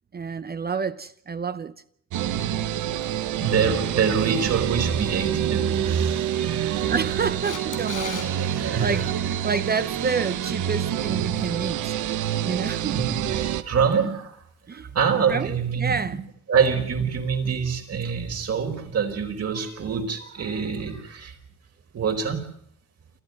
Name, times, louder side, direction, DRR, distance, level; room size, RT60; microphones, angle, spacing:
voice 1, 0.1-1.7 6.9-9.1 9.4-11.9 12.4-13.2 14.7-14.9 15.3-16.2, right 5 dB, 30° right, 0.8 m, -29 dB
sound 1, 2.1-13.6, right 10 dB, 75° right, 1.3 m, -27 dB
voice 2, 3.4-7.2 8.1-9.1 12.8-14.4 14.7-16.2 16.5-21.3 21.9-22.5, right 6 dB, 55° right, 4.8 m, -26 dB
Camera, 7.4-8.3 15.0-15.1, left 9 dB, 90° left, 6.9 m, -35 dB
28.5 x 13.0 x 9.5 m
cardioid pair, 90°, 30 cm